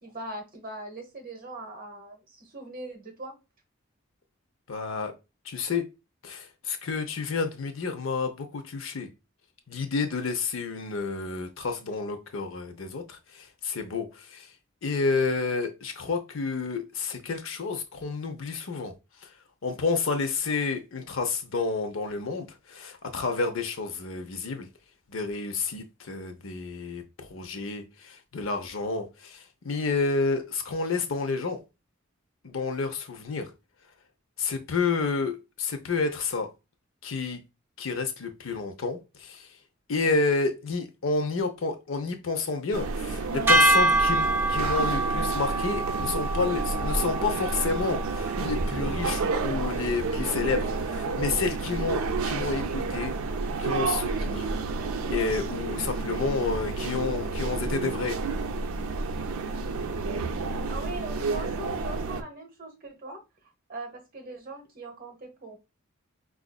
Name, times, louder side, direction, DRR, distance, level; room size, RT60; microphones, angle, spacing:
voice 1, 0.0-3.3 60.7-63.2 63.7-65.6, right 2 dB, 45° right, 1.0 m, -40 dB
voice 2, 4.7-5.1 5.4-5.9 6.2-9.1 9.7-14.5 14.8-18.9 19.2-19.3 19.6-24.7 25.1-31.6 32.4-33.5 34.4-36.5 37.0-37.4 37.8-39.5 39.9-53.1 53.6-54.5 55.1-58.2, left 4 dB, 70° left, 0.6 m, -30 dB
sound 1, 42.7-62.2, right 3 dB, 85° right, 0.4 m, -30 dB
sound 2, 43.5-49.8, right 2 dB, 10° right, 0.6 m, -26 dB
4.9 x 2.4 x 2.2 m
head